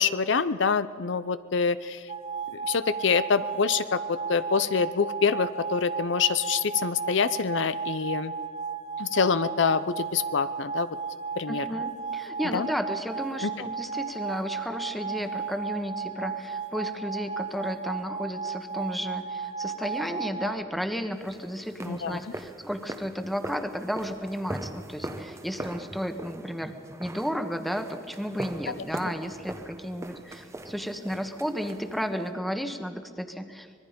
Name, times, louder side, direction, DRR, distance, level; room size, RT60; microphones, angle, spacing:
voice 1, 0.0-2.1 2.6-8.3 9.0-10.9 11.4-11.7 12.5-12.7 13.4-13.5 21.9-22.3 28.7-28.9, left 5 dB, 65° left, 14 dB, 0.6 m, -26 dB
sound 1, 2.1-20.6, right 5 dB, 35° right, 0.8 m, -34 dB
voice 2, 11.5-26.7 27.0-33.8, equal, ahead, 7 dB, 1.3 m, -33 dB
sound 2, 21.2-32.3, right 1 dB, 15° right, 1.0 m, -41 dB
25.5 x 20.5 x 5.2 m, 2.4 s
head